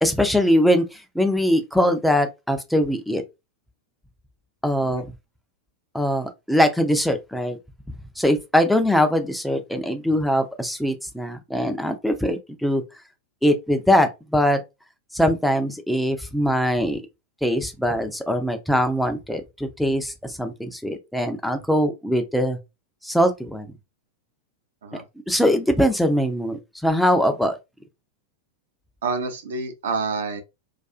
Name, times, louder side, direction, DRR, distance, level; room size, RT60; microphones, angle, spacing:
voice 1, 0.0-3.2 4.6-5.0 5.9-7.6 8.2-12.8 13.4-14.6 15.1-17.0 17.4-22.6 23.0-23.7 25.3-27.6, equal, ahead, 0.4 m, -22 dB
voice 2, 29.0-30.4, right 4 dB, 60° right, 0.5 m, -28 dB
2.3 x 2.3 x 2.4 m
figure-of-eight pair, 90°, 0 cm